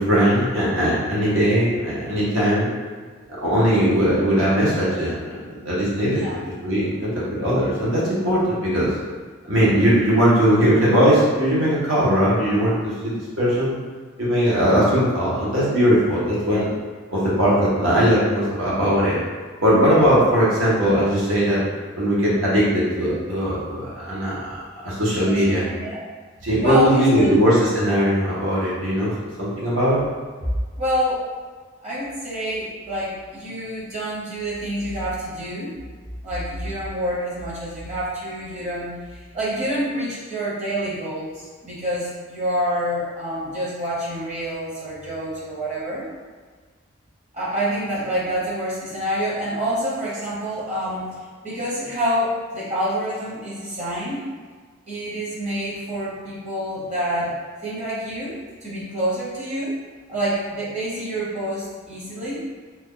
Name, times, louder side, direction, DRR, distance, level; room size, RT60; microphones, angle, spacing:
voice 1, 0.0-2.7 3.4-5.1 5.6-8.9 9.5-13.7 14.2-16.7 17.1-19.2 19.6-21.6 22.0-24.6 24.8-25.6 26.4-30.0, equal, 75° right, -7 dB, 1.1 m, -19 dB
voice 2, 6.1-6.4 25.2-26.0 26.6-27.4 30.8-31.2 31.8-35.7 36.2-46.1 47.3-51.2 51.4-54.2 54.9-57.3 57.6-59.7 60.1-62.5, equal, 35° right, -7 dB, 1.0 m, -27 dB
2.9 x 2.3 x 3.6 m, 1.5 s
head